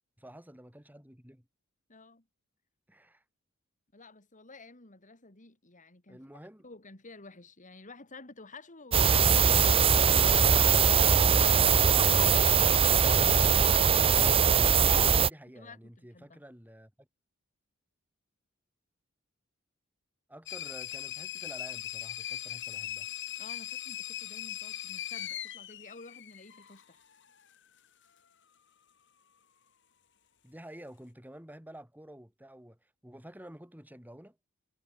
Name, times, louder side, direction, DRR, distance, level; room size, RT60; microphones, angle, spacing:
voice 1, 0.2-1.5 2.9-3.2 6.1-6.7 14.9-17.1 20.3-23.1 30.4-34.4, right 1 dB, 10° right, 6.6 m, -50 dB
voice 2, 1.9-2.2 3.9-6.2 6.6-10.8 13.9-15.1 15.5-16.4 23.4-27.0, left 3 dB, 40° left, 2.9 m, -51 dB
sound 1, 8.9-15.3, right 7 dB, 25° right, 0.6 m, -22 dB
sound 2, 20.5-26.8, left 12 dB, 60° left, 5.5 m, -39 dB
head